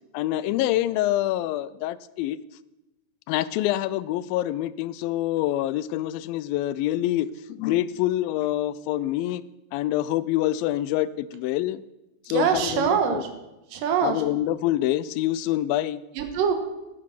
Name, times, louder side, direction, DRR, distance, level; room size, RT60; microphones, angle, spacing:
voice 1, 0.1-2.4 3.3-9.4 9.7-11.8 12.3-13.2 14.0-16.0, left 14 dB, 85° left, 17 dB, 2.3 m, -26 dB
voice 2, 12.3-13.3 13.7-14.2 16.1-16.5, right 7 dB, 75° right, 6 dB, 2.9 m, -24 dB
12.5 x 9.5 x 5.9 m, 0.97 s
omnidirectional pair, 4.1 m